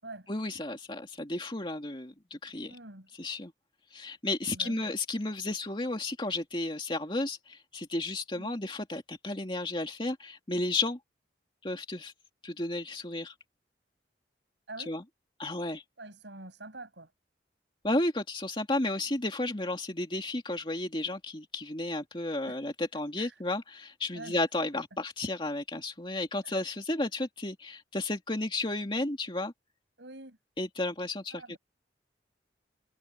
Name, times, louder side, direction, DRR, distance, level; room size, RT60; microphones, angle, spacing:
voice 1, 0.3-2.8 3.2-3.5 3.9-11.0 11.6-12.1 12.4-13.3 14.9-15.0 15.4-15.8 17.8-29.5 30.6-31.6, left 2 dB, 30° left, 2.5 m, -33 dB
voice 2, 2.7-3.1 4.5-4.8 8.3-8.5 14.7-14.9 16.0-17.1 22.5-22.6 23.2-23.4 24.1-24.4 26.4-26.6 30.0-30.4 31.3-31.6, right 2 dB, 80° right, 6.9 m, -46 dB
head